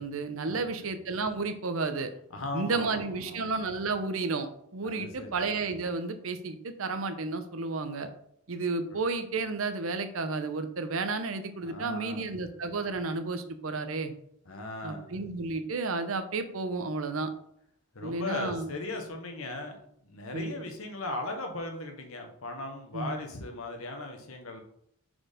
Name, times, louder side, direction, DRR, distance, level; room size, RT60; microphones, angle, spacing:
voice 1, 0.0-2.1 2.5-8.1 8.5-14.1 14.8-17.3 18.0-18.7 20.3-20.5 22.9-23.1, right 3 dB, 80° right, 9 dB, 0.7 m, -32 dB
voice 2, 2.3-3.5 4.8-5.3 11.6-12.3 14.5-15.1 17.9-19.8 20.1-24.6, left 2 dB, 90° left, 3 dB, 1.2 m, -38 dB
4.7 x 4.3 x 5.0 m, 0.71 s
head